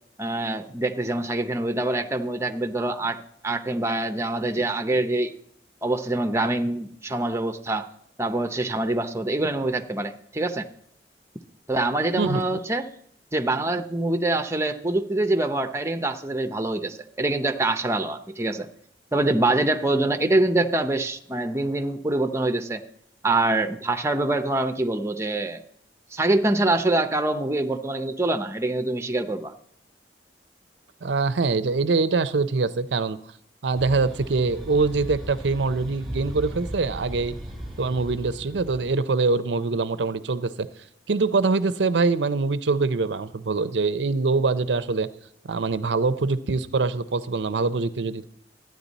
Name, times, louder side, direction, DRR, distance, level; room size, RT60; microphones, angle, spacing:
voice 1, 0.2-3.2 3.4-5.3 5.8-7.9 8.2-10.7 11.7-12.9 13.3-18.7 19.1-22.8 23.2-25.6 26.1-29.5, right 2 dB, 15° right, 7 dB, 0.7 m, -25 dB
voice 2, 12.2-12.6 31.0-33.2 33.6-37.3 37.8-40.7 41.1-45.1 45.4-48.3, right 3 dB, 85° right, 13 dB, 0.6 m, -24 dB
sound 1, 33.8-38.9, right 1 dB, ahead, 1.4 m, -37 dB
13.0 x 9.5 x 4.1 m, 0.70 s
head